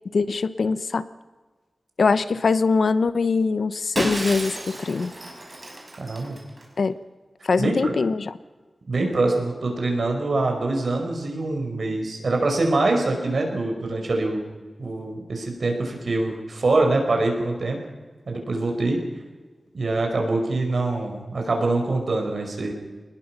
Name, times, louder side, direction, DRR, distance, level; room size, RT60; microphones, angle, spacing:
voice 1, 0.1-1.0 2.0-5.1 6.8-7.0 7.4-8.3, left 4 dB, 85° left, 14 dB, 0.8 m, -22 dB
Shatter, 4.0-6.6, right 1 dB, 35° right, 5.5 m, -32 dB
voice 2, 6.0-6.3 7.6-7.9 8.9-14.4 14.8-17.8 18.3-19.0 19.7-22.7, right 2 dB, 75° right, 2 dB, 5.2 m, -24 dB
25.0 x 20.0 x 5.9 m, 1.4 s
wide cardioid pair, 75°, 0 cm